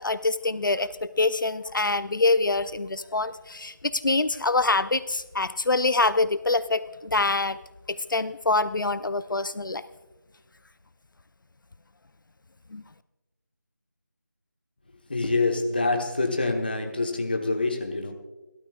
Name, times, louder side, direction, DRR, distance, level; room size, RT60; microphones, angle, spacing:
voice 1, 0.0-7.6 7.9-9.8 12.7-12.8, left 3 dB, 80° left, 14 dB, 0.6 m, -25 dB
voice 2, 15.1-18.1, left 3 dB, 30° left, 4 dB, 1.2 m, -26 dB
26.0 x 12.5 x 2.4 m, 1.1 s
figure-of-eight pair, 175°, 11 cm